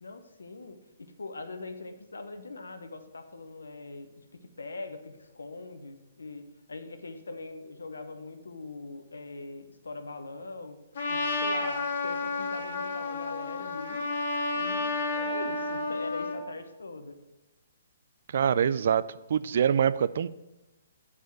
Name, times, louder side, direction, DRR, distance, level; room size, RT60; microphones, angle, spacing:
voice 1, 0.0-10.8 11.1-14.0 14.5-17.2, left 3 dB, 80° left, 8 dB, 0.8 m, -42 dB
Trumpet, 11.0-16.4, left 3 dB, 60° left, 1.3 m, -31 dB
voice 2, 18.3-19.0 19.3-20.3, right 8 dB, 60° right, 16 dB, 0.3 m, -24 dB
8.1 x 4.9 x 5.9 m, 1.0 s
figure-of-eight pair, 130°, 0 cm